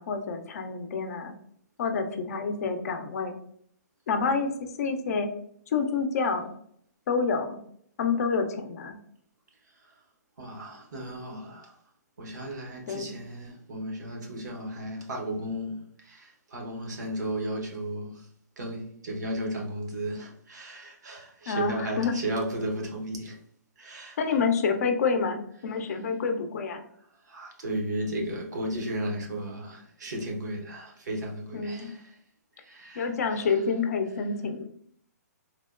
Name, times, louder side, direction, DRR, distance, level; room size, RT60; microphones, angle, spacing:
voice 1, 0.0-1.3 1.8-3.3 4.1-4.5 4.8-5.3 5.7-6.5 7.1-7.6 8.0-9.0 12.9-13.1 21.5-22.2 24.2-26.8 31.5-32.0 33.0-34.6, left 5 dB, 60° left, 0.5 m, -28 dB
voice 2, 10.4-11.7 12.2-18.3 18.6-23.4 23.8-24.2 27.2-32.1 32.6-33.5, right 1 dB, 75° right, 1.0 m, -34 dB
3.4 x 2.1 x 2.4 m
hypercardioid pair, 135°, 9 cm